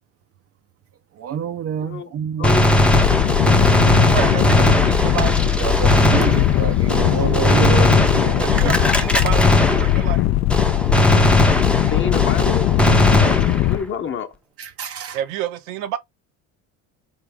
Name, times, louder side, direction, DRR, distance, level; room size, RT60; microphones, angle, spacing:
voice 1, 1.2-2.7 5.6-7.9 8.2-8.7 14.6-15.2, right 9 dB, 40° right, 0.5 m, -27 dB
voice 2, 1.8-2.1 2.4-2.6 3.3-3.4 7.5-7.9 11.9-12.7 13.7-14.3, left 6 dB, 35° left, 1.0 m, -27 dB
Gunshot gunfire, 2.4-10.2 10.5-13.9, left 1 dB, 5° left, 0.6 m, -18 dB
sound 1, 2.8-13.8, left 15 dB, 50° left, 0.5 m, -20 dB
voice 3, 3.9-5.5 8.4-10.2 13.1-13.4 15.1-16.0, right 10 dB, 90° right, 1.0 m, -29 dB
4.1 x 3.4 x 3.5 m
cardioid pair, 120°, 36 cm